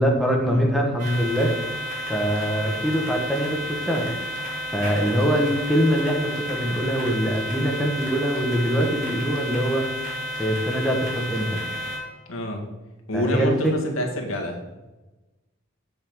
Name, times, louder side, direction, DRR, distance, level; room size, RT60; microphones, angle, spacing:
voice 1, 0.0-9.9 10.4-11.6 13.1-13.7, equal, ahead, -1 dB, 1.3 m, -23 dB
sound 1, 1.0-12.0, equal, 40° right, 2.3 m, -31 dB
voice 2, 12.3-12.6 13.1-14.6, left 1 dB, 75° left, 1 dB, 1.9 m, -27 dB
7.7 x 5.9 x 7.8 m, 1.1 s
head